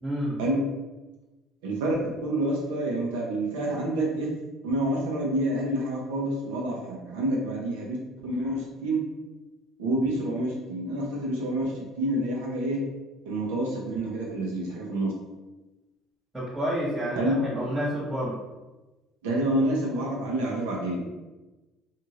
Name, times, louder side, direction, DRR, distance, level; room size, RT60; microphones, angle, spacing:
voice 1, 0.0-0.4 16.3-18.3, equal, 15° right, -7 dB, 1.2 m, -29 dB
voice 2, 1.6-4.3 4.6-8.0 8.2-9.0 9.8-11.7 12.0-12.8 13.2-15.1 17.2-17.4 19.2-21.0, right 1 dB, 85° right, -2 dB, 0.8 m, -28 dB
2.7 x 2.5 x 3.0 m, 1.1 s
supercardioid pair, 75°, 0 cm